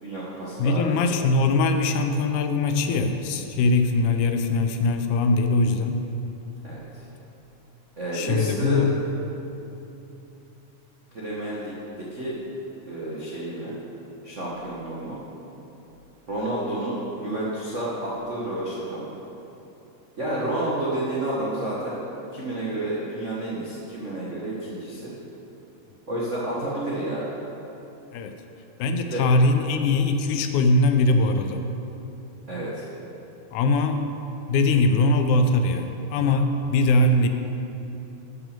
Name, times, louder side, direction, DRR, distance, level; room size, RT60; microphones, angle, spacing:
voice 1, 0.0-1.0 6.6-7.0 8.0-8.9 11.1-12.4 12.8-13.7 14.2-15.2 16.3-19.1 20.2-22.0 22.3-25.1 26.1-27.3 29.1-29.2 32.5-32.9, right 1 dB, 85° right, -6 dB, 0.6 m, -30 dB
voice 2, 0.6-6.1 8.1-9.0 28.1-28.4 28.8-31.7 33.5-34.1 34.5-37.3, left 2 dB, 80° left, 6 dB, 2.0 m, -21 dB
11.0 x 6.0 x 6.6 m, 2.9 s
omnidirectional pair, 3.7 m